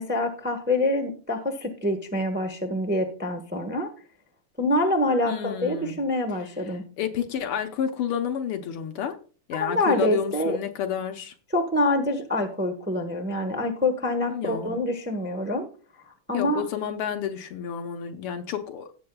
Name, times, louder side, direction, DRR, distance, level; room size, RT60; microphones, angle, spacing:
voice 1, 0.0-3.9 4.6-6.8 9.6-10.6 11.5-15.7 16.3-16.6, left 1 dB, 10° right, 0.6 m, -26 dB
voice 2, 5.2-6.0 7.0-9.2 9.5-11.3 14.3-14.8 16.3-18.9, left 8 dB, 80° left, 2.0 m, -30 dB
16.5 x 7.2 x 2.3 m
omnidirectional pair, 2.4 m